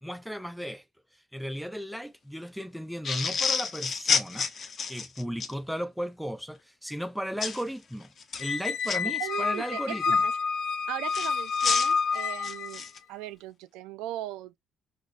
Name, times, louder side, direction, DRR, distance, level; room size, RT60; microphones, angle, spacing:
voice 1, 0.0-0.8 1.3-4.5 4.9-8.1 8.4-10.2, equal, ahead, 0.4 m, -35 dB
sound 1, 3.0-5.5 7.4-7.6 8.2-9.0 11.1-13.0, left 5 dB, 50° left, 0.8 m, -29 dB
Squeak, 8.4-12.9, left 5 dB, 70° left, 0.4 m, -28 dB
voice 2, 9.2-10.3 10.9-14.6, right 14 dB, 90° right, 0.3 m, -38 dB
5.0 x 2.0 x 2.4 m
supercardioid pair, 75°, 0 cm